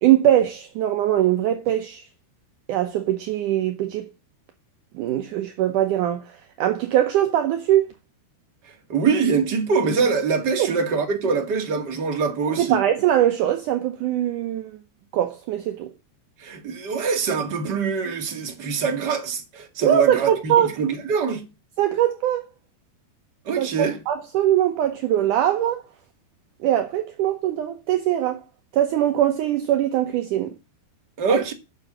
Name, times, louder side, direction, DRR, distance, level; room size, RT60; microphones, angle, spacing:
voice 1, 0.0-2.0 2.7-4.1 4.9-7.9 10.6-10.7 12.5-14.8 15.1-15.9 19.8-20.7 21.8-22.5 23.6-25.8 26.6-28.4 28.7-30.5 31.3-31.4, right 11 dB, 80° right, 1.8 m, -21 dB
voice 2, 8.9-12.8 16.4-21.4 23.5-24.0 31.2-31.5, right 5 dB, 35° right, 2.0 m, -24 dB
9.8 x 6.3 x 7.5 m
omnidirectional pair, 4.8 m